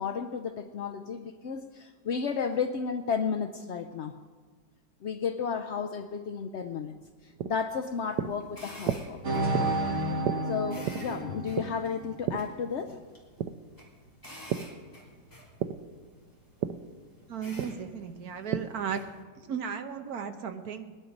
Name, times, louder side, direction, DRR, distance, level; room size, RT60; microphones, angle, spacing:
voice 1, 0.0-4.2 5.0-6.9 7.2-9.4 10.5-13.0, left 6 dB, 75° left, 7 dB, 0.6 m, -33 dB
sound 1, 6.8-14.8 15.1-18.9, right 9 dB, 85° right, 1.3 m, -35 dB
sound 2, 7.8-19.2, equal, 10° left, 2.7 m, -51 dB
sound 3, 9.2-12.1, right 2 dB, 45° right, 1.6 m, -31 dB
voice 2, 17.3-19.1 19.5-20.9, right 7 dB, 65° right, 7 dB, 1.3 m, -35 dB
20.0 x 11.0 x 5.2 m, 1.5 s
omnidirectional pair, 1.9 m